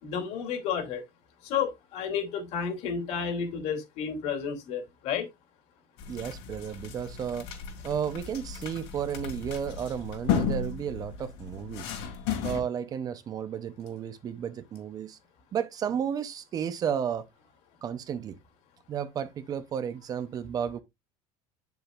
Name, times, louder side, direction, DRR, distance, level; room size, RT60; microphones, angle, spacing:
voice 1, 0.0-1.0 1.4-5.3, left 7 dB, 55° left, 2.7 m, -31 dB
sound 1, 6.0-12.6, left 7 dB, 90° left, 3.4 m, -34 dB
voice 2, 6.1-7.5 7.8-12.0 12.4-15.2 15.5-17.3 17.8-18.4 18.9-20.8, right 8 dB, 30° right, 0.7 m, -33 dB
9.6 x 7.0 x 2.5 m
cardioid pair, 170°, 14 cm